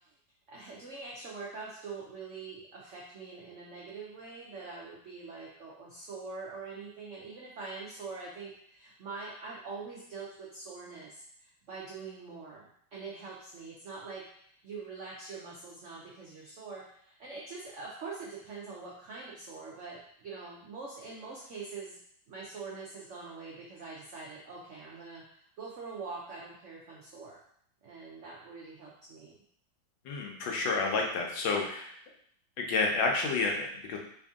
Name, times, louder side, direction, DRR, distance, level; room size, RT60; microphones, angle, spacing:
voice 1, 0.5-22.0 22.3-27.4 27.8-29.4, right 4 dB, 85° right, -4 dB, 0.6 m, -44 dB
voice 2, 30.0-32.0 32.6-34.0, left 3 dB, 80° left, 0 dB, 1.5 m, -30 dB
3.4 x 2.7 x 3.5 m, 0.66 s
omnidirectional pair, 2.1 m